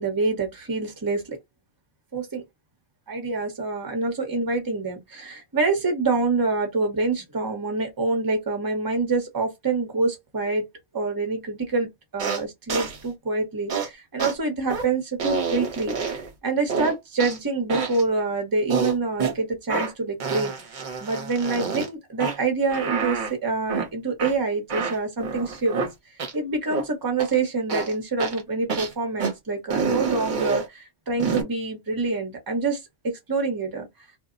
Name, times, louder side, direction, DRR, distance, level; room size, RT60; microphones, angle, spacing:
voice 1, 0.0-1.4 2.1-2.4 3.1-10.7 10.9-20.5 21.0-25.8 26.3-33.9, right 3 dB, 25° right, 0.7 m, -26 dB
sound 1, 12.2-12.4 12.7-13.0 13.7-13.9 14.2-14.3 14.7-14.8 15.2-16.3 16.7-17.4 17.7-18.0 18.7-19.3 19.7-19.9 20.2-21.9 22.2-22.4 22.7-23.3 23.7-23.9 24.2-24.3 24.7-25.9 26.2-26.3 26.7-26.8 27.2-27.3 27.7-27.9 28.2-28.4 28.7-28.9 29.2-29.3 29.7-30.7 31.2-31.4, right 5 dB, 55° right, 0.8 m, -27 dB
2.2 x 2.0 x 3.6 m
omnidirectional pair, 1.1 m